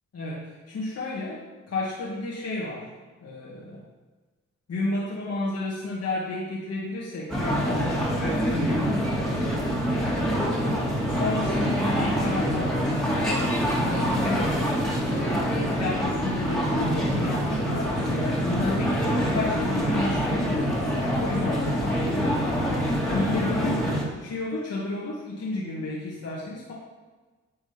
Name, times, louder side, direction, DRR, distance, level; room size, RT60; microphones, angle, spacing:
voice 1, 0.1-2.9 3.2-3.8 4.7-7.9 8.2-9.4 10.6-12.8 13.2-14.7 15.6-22.7 23.1-23.9 24.2-26.7, left 2 dB, 55° left, -5 dB, 1.8 m, -32 dB
sound 1, 7.3-24.0, equal, ahead, 2.4 m, -25 dB
10.0 x 3.5 x 5.8 m, 1.3 s
cardioid pair, 60°, 30 cm